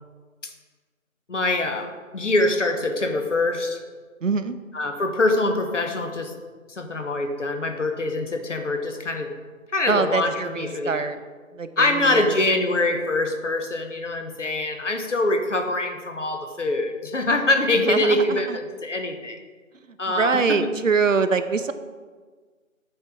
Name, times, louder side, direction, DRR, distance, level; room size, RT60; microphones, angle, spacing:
voice 1, 1.3-3.8 4.7-6.3 6.7-9.3 9.7-11.1 11.8-19.4 20.0-20.7, left 2 dB, 60° left, 5 dB, 1.0 m, -24 dB
voice 2, 4.2-4.6 9.9-11.2 11.5-12.4 17.7-18.6 20.1-21.7, right 5 dB, 65° right, 10 dB, 0.6 m, -24 dB
7.6 x 4.5 x 5.2 m, 1.5 s
figure-of-eight pair, 180°, 41 cm